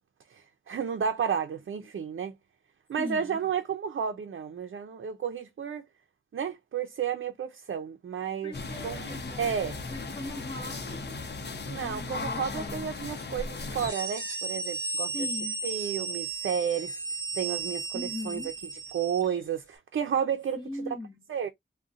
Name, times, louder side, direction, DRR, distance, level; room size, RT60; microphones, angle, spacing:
voice 1, 0.3-2.3 2.9-5.9 6.3-8.5 8.8-9.8 11.7-15.1 15.6-17.0 17.3-18.4 18.9-20.9 21.3-21.5, right 7 dB, 85° right, 0.5 m, -32 dB
voice 2, 3.0-3.5 8.4-9.5 9.9-11.3 11.8-13.1 15.1-15.6 17.9-18.5 20.6-21.3, left 2 dB, 20° left, 0.9 m, -40 dB
sound 1, 8.5-13.9, left 3 dB, 60° left, 0.7 m, -37 dB
sound 2, 13.7-19.4, right 4 dB, 15° right, 1.6 m, -35 dB
3.8 x 2.2 x 2.4 m
wide cardioid pair, 115°, 20 cm